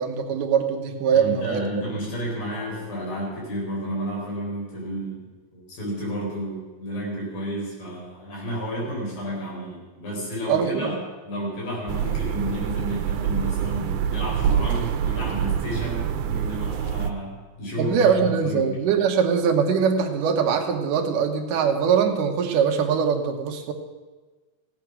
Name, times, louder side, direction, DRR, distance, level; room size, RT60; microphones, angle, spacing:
voice 1, 0.0-1.6 10.5-10.9 17.8-23.7, right 7 dB, 70° right, 4 dB, 2.5 m, -22 dB
voice 2, 1.1-11.0 11.3-18.7, equal, 65° left, -4 dB, 5.9 m, -31 dB
sound 1, 11.9-17.1, right 9 dB, 85° right, 2.6 m, -26 dB
16.0 x 9.2 x 6.1 m, 1.3 s
omnidirectional pair, 4.3 m